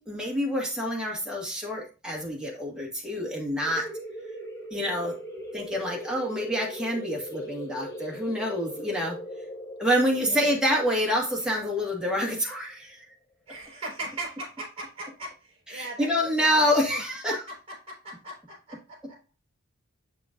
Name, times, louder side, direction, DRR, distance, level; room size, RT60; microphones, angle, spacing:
voice 1, 0.0-3.9 4.7-5.2 5.5-9.2 9.8-13.0 15.7-17.4, equal, 5° right, -2 dB, 1.7 m, -27 dB
sound 1, 3.6-12.9, equal, 15° left, 1.5 m, -40 dB
voice 2, 13.5-16.1 16.6-17.0 17.3-17.4 17.9-19.0, right 2 dB, 30° right, -3 dB, 4.2 m, -39 dB
6.9 x 6.7 x 2.5 m, 0.33 s
head